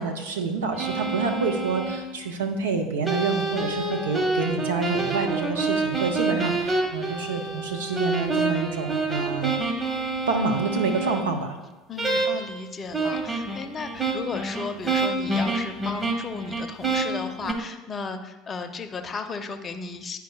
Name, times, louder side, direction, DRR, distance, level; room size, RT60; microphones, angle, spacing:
voice 1, 0.0-9.5 10.3-11.6, right 4 dB, 75° right, 4 dB, 0.7 m, -27 dB
sound 1, 0.7-2.0 3.0-11.2 12.0-12.6 12.9-17.5, right 3 dB, 20° right, 1.4 m, -27 dB
voice 2, 11.9-20.2, left 4 dB, 30° left, 8 dB, 0.6 m, -35 dB
10.5 x 4.6 x 2.3 m, 1.1 s
figure-of-eight pair, 65°, 0 cm